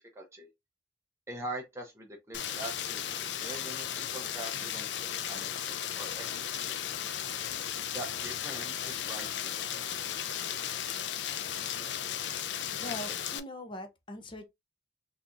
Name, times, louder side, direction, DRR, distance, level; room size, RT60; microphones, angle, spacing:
voice 1, 0.1-0.5 1.3-6.9 7.9-9.7 12.8-12.9, right 2 dB, 15° right, 0.7 m, -43 dB
Rain, 2.3-13.4, left 9 dB, 75° left, 0.4 m, -35 dB
voice 2, 12.8-14.5, left 1 dB, 25° left, 0.6 m, -41 dB
3.7 x 2.8 x 2.5 m
head